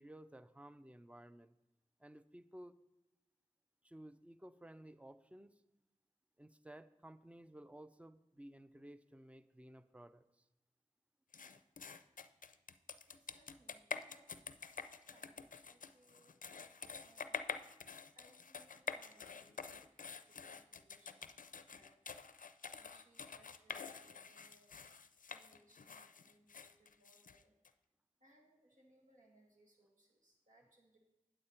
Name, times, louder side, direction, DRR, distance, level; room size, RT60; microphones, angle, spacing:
voice 1, 0.0-1.5 2.0-2.7 3.8-5.6 6.4-10.4, right 1 dB, 10° right, 13 dB, 0.5 m, -56 dB
sound 1, 11.3-27.7, left 5 dB, 80° left, 0.4 m, -48 dB
voice 2, 13.1-17.4 18.1-22.0 22.8-24.8 25.3-27.6 28.2-31.0, right 1 dB, 70° right, -1 dB, 2.1 m, -70 dB
8.8 x 8.3 x 4.4 m, 0.99 s
wide cardioid pair, 40°, 14 cm